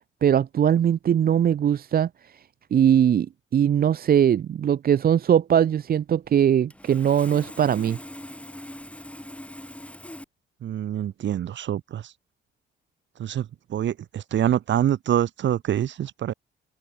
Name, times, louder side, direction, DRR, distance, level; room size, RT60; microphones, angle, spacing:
voice 1, 0.2-2.4 2.7-3.3 3.5-8.0, right 9 dB, 50° right, 0.7 m, -20 dB
Sawing, 6.2-6.3 6.7-10.2, left 1 dB, 5° left, 5.9 m, -41 dB
voice 2, 10.6-12.1 13.2-16.3, right 11 dB, 70° right, 3.1 m, -26 dB
open air
cardioid pair, 90°, 20 cm